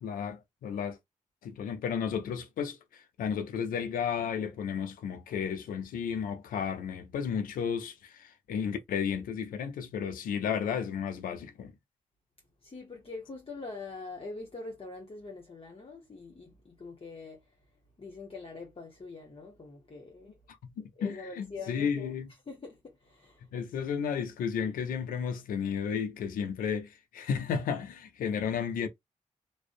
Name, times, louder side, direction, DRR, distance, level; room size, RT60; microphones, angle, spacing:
voice 1, 0.0-1.0 1.4-11.7 20.5-22.3 23.5-28.9, left 7 dB, 85° left, 0.5 m, -33 dB
voice 2, 12.6-17.4 18.0-20.4 21.0-22.2 22.5-23.5, left 3 dB, 40° left, 0.9 m, -44 dB
2.5 x 2.0 x 2.5 m
supercardioid pair, 40°, 14 cm